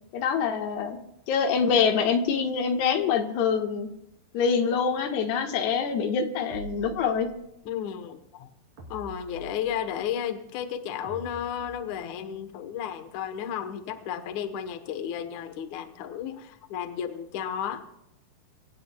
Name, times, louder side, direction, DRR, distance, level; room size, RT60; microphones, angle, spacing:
voice 1, 0.1-1.0 1.3-3.9 4.3-7.3, left 6 dB, 85° left, 4 dB, 3.4 m, -25 dB
sound 1, 6.5-7.6 8.8-10.0 11.0-12.3, right 3 dB, 45° right, 4.1 m, -45 dB
voice 2, 7.7-8.5 8.9-17.9, left 9 dB, 70° left, 9 dB, 1.9 m, -33 dB
24.5 x 16.5 x 2.3 m, 0.83 s
omnidirectional pair, 4.7 m